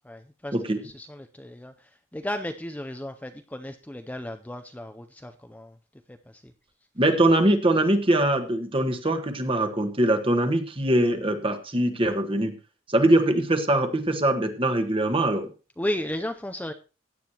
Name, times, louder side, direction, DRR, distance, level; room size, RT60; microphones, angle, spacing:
voice 1, 0.0-5.8 6.1-6.5 15.8-16.7, left 1 dB, 10° left, 7 dB, 0.5 m, -35 dB
voice 2, 7.0-12.6 12.9-15.5, right 1 dB, 30° right, 6 dB, 1.3 m, -22 dB
16.5 x 9.4 x 2.9 m, 0.32 s
head